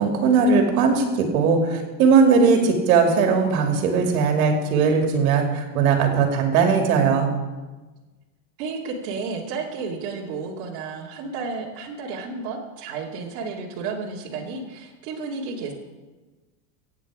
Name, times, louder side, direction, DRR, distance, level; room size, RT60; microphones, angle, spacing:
voice 1, 0.0-7.3, right 5 dB, 65° right, 3 dB, 2.7 m, -19 dB
voice 2, 8.6-15.7, right 4 dB, 45° right, -3 dB, 2.4 m, -32 dB
24.5 x 9.0 x 4.9 m, 1.2 s
supercardioid pair, 180°, 45 cm